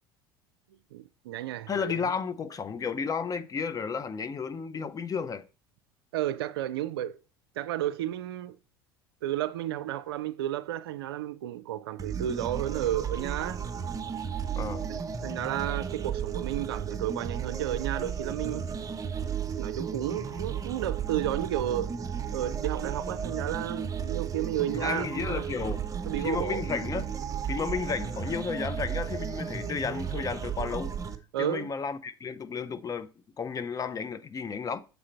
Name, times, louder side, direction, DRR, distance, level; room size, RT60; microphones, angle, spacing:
voice 1, 0.9-2.1 6.1-7.2 7.6-8.6 9.2-13.6 14.9-18.7 19.6-22.0 22.3-25.5 26.1-26.6 31.3-31.7, right 12 dB, 75° right, 0.4 m, -32 dB
voice 2, 1.7-5.4 14.6-14.9 24.7-25.8 26.2-27.1 27.5-30.9 31.4-33.1 33.4-34.8, left 5 dB, 25° left, 0.6 m, -32 dB
sound 1, 12.0-31.1, right 7 dB, 25° right, 0.8 m, -34 dB
6.8 x 3.8 x 4.3 m
hypercardioid pair, 70°, 13 cm